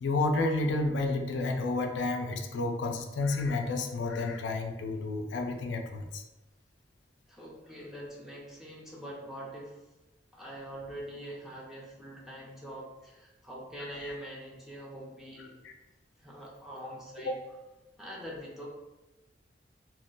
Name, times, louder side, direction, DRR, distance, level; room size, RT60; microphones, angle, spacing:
voice 1, 0.0-6.2 14.0-14.1 15.6-15.7 17.3-17.4, left 2 dB, 80° left, 4 dB, 0.3 m, -30 dB
voice 2, 7.3-9.8 10.3-15.6 16.2-17.4 18.0-18.7, equal, ahead, -5 dB, 0.5 m, -44 dB
2.3 x 2.1 x 3.7 m, 1.1 s
head